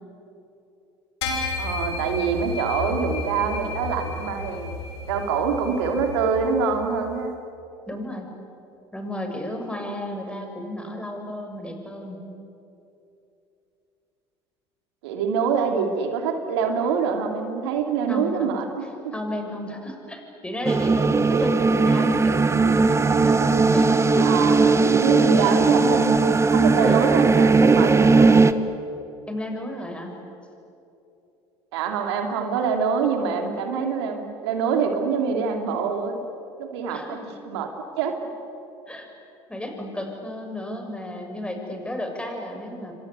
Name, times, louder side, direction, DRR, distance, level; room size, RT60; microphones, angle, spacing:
sound 1, 1.2-6.8, left 4 dB, 85° left, 5.2 m, -32 dB
voice 1, 1.6-4.7 5.1-7.3 15.0-19.1 24.2-28.6 31.7-36.2 36.6-37.2 37.4-37.7 38.0-38.2, right 6 dB, 75° right, 4 dB, 2.9 m, -25 dB
voice 2, 7.9-8.3 8.9-12.3 18.1-18.5 19.1-21.6 21.8-24.3 29.3-30.2 36.9-37.2 38.9-39.1 39.5-42.9, left 1 dB, 10° left, 3 dB, 6.8 m, -33 dB
sound 2, 20.6-28.5, right 4 dB, 20° right, 1.3 m, -18 dB
29.0 x 24.5 x 8.3 m, 2.8 s
hypercardioid pair, 70°, 14 cm